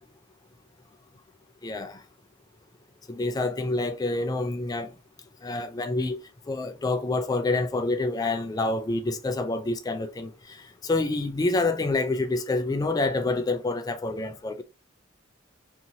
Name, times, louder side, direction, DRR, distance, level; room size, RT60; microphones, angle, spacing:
voice 1, 1.6-2.0 3.1-4.9 5.4-6.2 6.5-14.6, left 2 dB, 20° left, 0.3 m, -27 dB
2.8 x 2.6 x 2.7 m
head